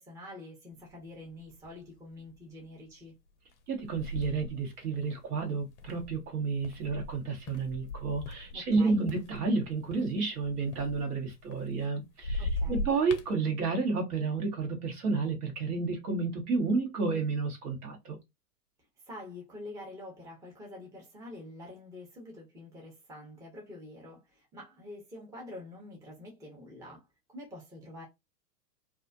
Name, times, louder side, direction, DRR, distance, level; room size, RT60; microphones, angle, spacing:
voice 1, 0.0-3.1 8.5-9.0 12.4-12.9 19.0-28.0, left 1 dB, 5° right, 0.6 m, -46 dB
sound 1, 0.9-1.0 1.4-1.9 2.4-2.6 3.5-8.8 9.1-11.9 12.2-13.3, left 1 dB, 50° left, 0.5 m, -38 dB
voice 2, 3.7-18.2, right 4 dB, 65° right, 1.1 m, -31 dB
2.4 x 2.0 x 2.6 m
figure-of-eight pair, 105°, 49 cm